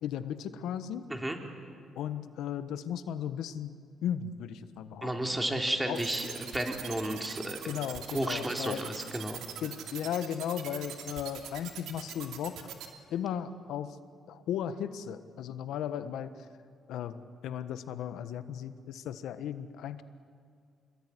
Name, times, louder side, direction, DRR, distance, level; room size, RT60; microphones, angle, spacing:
voice 1, 0.0-1.1 1.9-5.1 5.5-5.6 5.9-6.0 7.6-8.9 9.6-12.7 13.1-14.0 14.3-16.5 16.9-20.0, left 9 dB, 85° left, 11 dB, 1.4 m, -36 dB
voice 2, 5.0-7.6 8.1-9.4, right 1 dB, 10° right, 3 dB, 3.7 m, -32 dB
sound 1, 5.9-12.9, right 9 dB, 85° right, 2.9 m, -42 dB
27.0 x 21.5 x 10.0 m, 2.2 s
cardioid pair, 90°, 0 cm